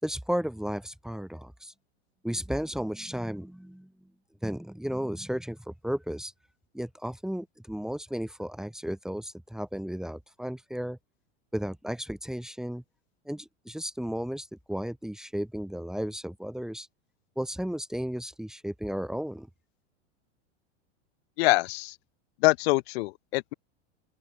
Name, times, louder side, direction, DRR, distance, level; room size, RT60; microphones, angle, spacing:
voice 1, 0.0-1.7 2.2-3.9 4.4-6.3 6.7-11.0 11.5-12.8 13.2-16.9 17.4-19.5, equal, ahead, 4.2 m, -34 dB
voice 2, 21.4-21.9 22.4-23.5, left 22 dB, 60° left, 2.4 m, -24 dB
open air
supercardioid pair, 125°, 35 cm